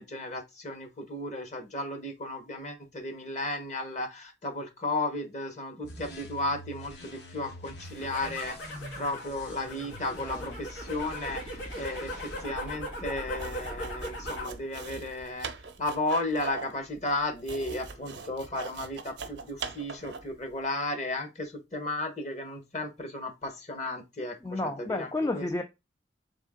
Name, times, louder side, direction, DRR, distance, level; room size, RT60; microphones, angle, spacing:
voice 1, 0.0-15.5 15.8-25.5, left 2 dB, 40° left, 1.1 m, -34 dB
sound 1, 5.8-12.4, equal, 65° left, 1.2 m, -46 dB
sound 2, 7.8-14.6 14.9-15.5, equal, 90° left, 2.0 m, -39 dB
sound 3, 13.3-20.4, right 5 dB, 75° right, 0.6 m, -41 dB
voice 2, 24.4-25.6, left 2 dB, 15° left, 0.3 m, -31 dB
3.6 x 3.6 x 3.6 m
head